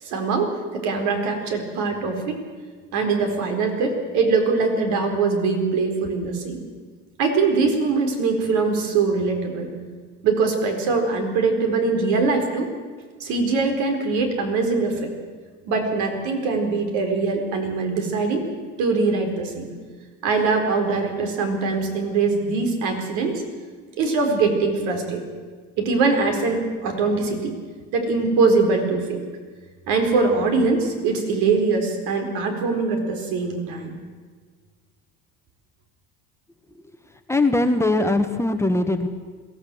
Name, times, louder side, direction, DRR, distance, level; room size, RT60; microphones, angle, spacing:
voice 1, 0.0-2.3 2.9-6.6 7.2-9.7 10.2-12.7 13.2-15.1 15.7-18.5 18.8-19.7 20.2-23.4 24.0-25.2 25.8-27.5 27.9-29.2 29.9-33.9, right 4 dB, 70° right, 4 dB, 4.4 m, -22 dB
voice 2, 37.3-39.1, left 2 dB, 10° left, 7 dB, 1.2 m, -20 dB
22.5 x 15.5 x 7.8 m, 1.5 s
cardioid pair, 120°, 31 cm